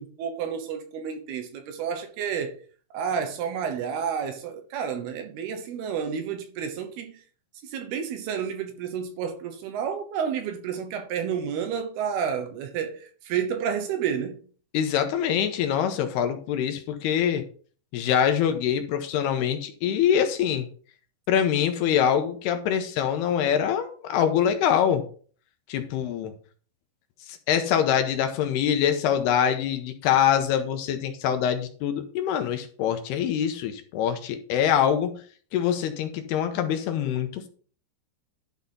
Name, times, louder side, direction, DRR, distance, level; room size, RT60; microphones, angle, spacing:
voice 1, 0.0-2.6 2.9-7.1 7.7-14.4, right 7 dB, 75° right, 2.8 m, -30 dB
voice 2, 14.7-17.4 17.9-20.7 21.3-25.0 25.7-26.3 27.5-35.1 35.5-37.5, left 9 dB, 80° left, 2.7 m, -24 dB
11.5 x 4.1 x 5.4 m
omnidirectional pair, 5.0 m